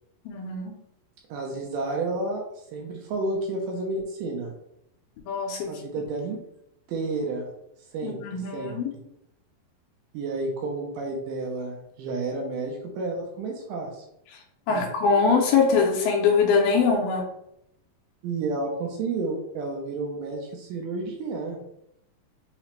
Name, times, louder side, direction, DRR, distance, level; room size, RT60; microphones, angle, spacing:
voice 1, 0.3-0.7 5.3-5.7 8.0-8.9 14.7-17.2, left 5 dB, 80° left, 1 dB, 2.1 m, -22 dB
voice 2, 1.3-4.5 5.7-6.4 6.9-7.5 7.9-8.8 10.1-14.0 14.7-14.9 18.2-21.8, right 3 dB, 80° right, 1 dB, 2.0 m, -31 dB
5.7 x 2.1 x 2.9 m, 0.79 s
omnidirectional pair, 4.2 m